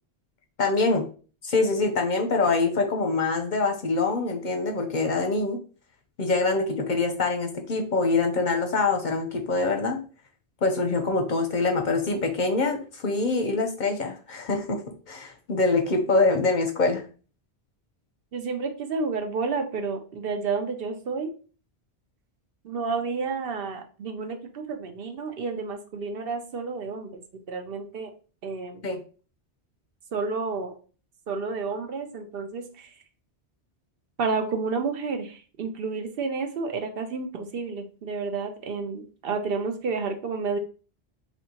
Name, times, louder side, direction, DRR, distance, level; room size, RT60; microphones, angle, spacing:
voice 1, 0.6-1.1 1.4-5.6 6.2-10.0 10.6-14.8 15.1-17.1 28.8-29.0, left 3 dB, 55° left, 5 dB, 0.7 m, -24 dB
voice 2, 18.3-21.3 22.6-27.2 27.5-28.1 28.4-28.9 30.1-30.7 31.3-32.9 34.2-40.6, right 4 dB, 65° right, 5 dB, 0.8 m, -30 dB
4.4 x 2.9 x 2.8 m, 0.38 s
omnidirectional pair, 1.1 m